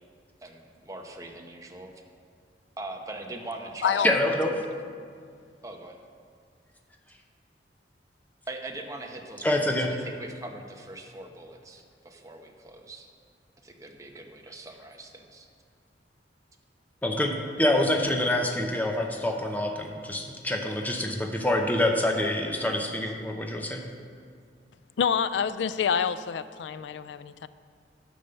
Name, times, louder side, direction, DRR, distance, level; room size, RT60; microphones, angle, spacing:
voice 1, 0.4-1.9 2.8-4.2 5.6-6.0 8.5-13.1 13.6-15.5, right 2 dB, 20° right, 0.8 m, -41 dB
voice 2, 4.0-4.5 9.4-9.9 17.0-23.8, left 1 dB, 10° left, 0.8 m, -26 dB
voice 3, 25.0-27.5, left 7 dB, 80° left, 0.4 m, -27 dB
10.0 x 5.5 x 6.7 m
head